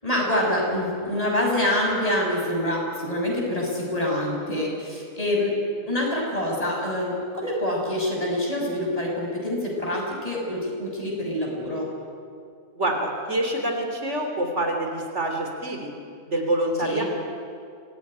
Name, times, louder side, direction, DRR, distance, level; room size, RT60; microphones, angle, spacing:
voice 1, 0.0-5.5 5.9-11.9 16.8-17.0, left 1 dB, 25° left, -2 dB, 6.3 m, -26 dB
voice 2, 12.8-15.9 16.3-17.0, right 1 dB, 55° right, 2 dB, 3.6 m, -26 dB
25.5 x 18.5 x 10.0 m, 2.3 s
omnidirectional pair, 1.4 m